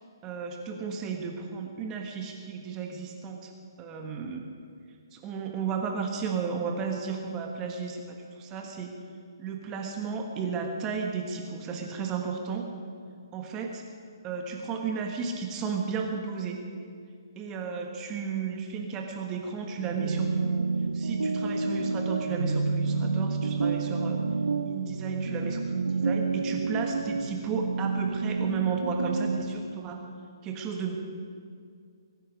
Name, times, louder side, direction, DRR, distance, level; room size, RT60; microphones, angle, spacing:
voice 1, 0.2-3.5 3.8-4.5 5.1-8.9 9.4-12.7 13.3-13.8 14.2-16.6 17.3-20.7 20.9-24.2 24.6-30.0 30.4-30.9, right 6 dB, 20° right, 2 dB, 1.5 m, -33 dB
sound 1, 19.8-29.7, right 4 dB, 85° right, 0.9 m, -29 dB
24.5 x 10.0 x 5.2 m, 2.3 s
hypercardioid pair, 145°, 2 cm